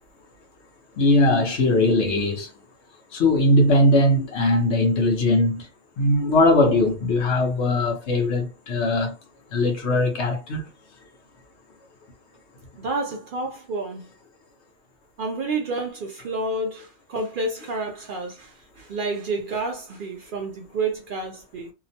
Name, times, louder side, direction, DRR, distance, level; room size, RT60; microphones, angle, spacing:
voice 1, 1.0-2.5 3.1-5.7 6.0-9.2 9.5-10.7, left 2 dB, 70° left, 1.1 m, -20 dB
voice 2, 12.8-14.1 15.2-21.7, right 3 dB, 60° right, 0.6 m, -29 dB
2.8 x 2.0 x 2.7 m
omnidirectional pair, 1.2 m